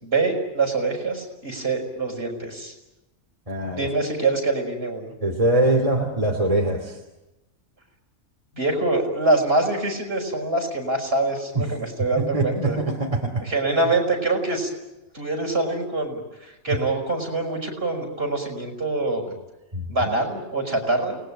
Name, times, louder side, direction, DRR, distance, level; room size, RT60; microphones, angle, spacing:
voice 1, 0.0-2.7 3.7-5.1 8.5-12.8 13.4-14.7 15.1-19.3 19.9-21.2, right 2 dB, 45° right, 2 dB, 5.7 m, -25 dB
voice 2, 3.5-3.9 5.2-7.0 11.5-11.7 12.2-13.5 16.7-16.8 19.7-19.9, right 1 dB, 25° right, 3 dB, 2.7 m, -23 dB
28.5 x 20.0 x 8.9 m, 1.0 s
omnidirectional pair, 1.4 m